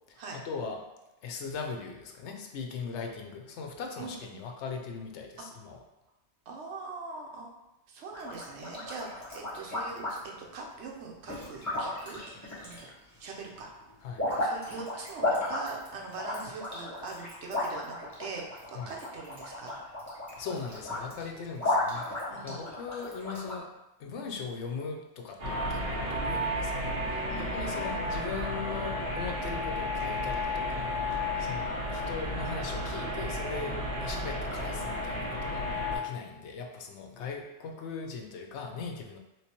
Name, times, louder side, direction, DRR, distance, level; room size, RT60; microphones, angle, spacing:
voice 1, 0.1-0.8 1.2-5.8 14.0-14.3 18.7-18.9 20.4-23.7 24.0-39.2, left 5 dB, 80° left, 3 dB, 0.9 m, -39 dB
voice 2, 4.0-4.4 5.4-5.6 6.5-7.5 7.9-10.2 10.5-12.2 12.6-12.9 13.2-13.7 14.4-19.8 22.3-22.7 27.3-27.8 31.3-31.7, right 4 dB, 80° right, 0 dB, 1.0 m, -42 dB
sound 1, 8.1-10.5 11.3-13.2 13.4-23.6, left 2 dB, 15° left, 1.0 m, -34 dB
sound 2, 25.4-36.0, left 1 dB, 60° right, 1.5 m, -32 dB
3.2 x 3.0 x 2.9 m, 0.96 s
omnidirectional pair, 1.2 m